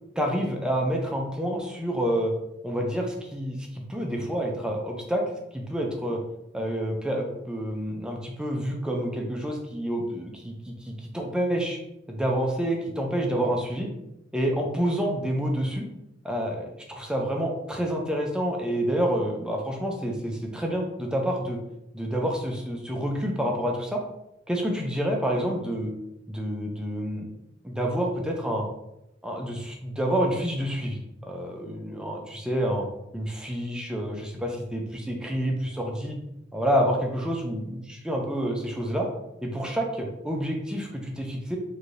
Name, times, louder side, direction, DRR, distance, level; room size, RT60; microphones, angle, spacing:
voice 1, 0.2-2.3 2.6-5.2 5.5-6.2 6.5-11.8 12.1-13.9 14.3-15.9 16.2-21.6 21.9-24.0 24.5-25.9 26.3-27.3 27.6-28.7 29.2-32.9 33.1-36.2 36.5-39.1 39.4-41.6, equal, 5° right, 1 dB, 0.4 m, -28 dB
3.2 x 2.7 x 2.5 m, 0.87 s
head